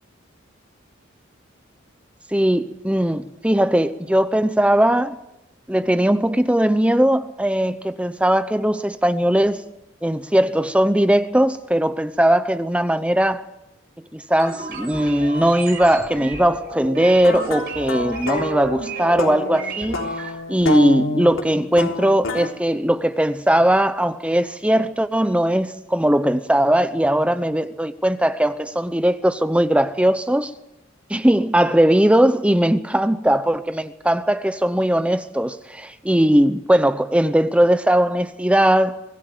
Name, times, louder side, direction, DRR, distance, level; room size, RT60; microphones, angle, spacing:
voice 1, 2.3-5.2 5.7-9.6 10.0-13.4 14.1-30.5 31.1-39.0, right 1 dB, 5° right, 0.7 m, -19 dB
sound 1, 14.4-20.3, right 2 dB, 50° right, 6.1 m, -33 dB
sound 2, 17.0-22.5, left 2 dB, 80° left, 3.6 m, -28 dB
25.0 x 17.0 x 9.3 m
head